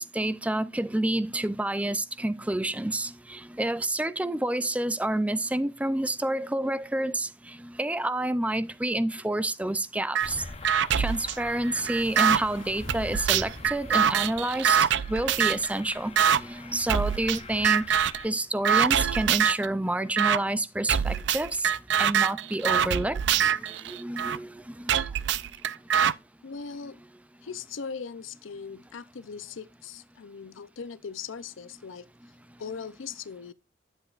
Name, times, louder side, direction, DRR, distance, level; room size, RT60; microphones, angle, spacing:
voice 1, 0.0-10.4 11.0-14.8 15.1-17.8 18.2-21.7 22.0-23.4 23.9-24.9, right 1 dB, 5° right, 0.4 m, -29 dB
sound 1, 10.1-10.3 10.6-12.4 12.9-15.7 16.2-16.4 16.9-17.4 17.6-18.2 18.6-19.7 20.2-20.4 20.9-24.4 24.9-26.1, right 8 dB, 70° right, 0.4 m, -24 dB
sound 2, 10.2-18.3, left 3 dB, 30° left, 0.7 m, -43 dB
sound 3, 11.8-17.8, right 2 dB, 90° right, 1.8 m, -51 dB
voice 2, 26.4-27.0 27.4-32.1 32.6-33.5, left 6 dB, 90° left, 0.6 m, -39 dB
9.9 x 8.0 x 2.4 m
head